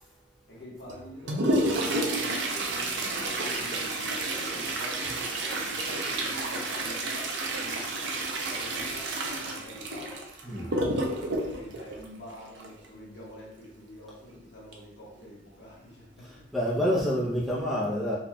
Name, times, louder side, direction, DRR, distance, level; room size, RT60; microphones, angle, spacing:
voice 1, 0.5-10.1 10.4-16.5, equal, 75° left, -5 dB, 1.3 m, -46 dB
Toilet flush, 0.9-12.8 14.7-14.8 15.2-15.3 16.0-16.1 16.8-17.0 17.5-17.6, right 2 dB, 75° right, 0.6 m, -30 dB
voice 2, 16.5-18.2, equal, ahead, -5 dB, 0.6 m, -27 dB
4.1 x 2.3 x 2.9 m, 0.73 s
head